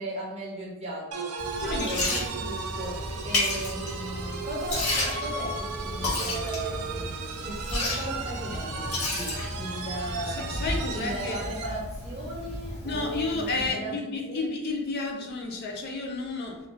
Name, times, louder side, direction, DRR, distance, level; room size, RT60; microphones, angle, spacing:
voice 1, 0.0-14.5, right 1 dB, 30° right, -4 dB, 0.6 m, -37 dB
sound 1, 1.1-11.8, right 4 dB, 75° right, 0.3 m, -36 dB
Liquid, 1.4-13.7, left 1 dB, 75° left, 0.8 m, -33 dB
voice 2, 1.6-2.0 10.3-11.4 12.8-16.6, left 3 dB, 45° left, 1 dB, 0.4 m, -31 dB
2.4 x 2.1 x 2.4 m, 0.99 s
head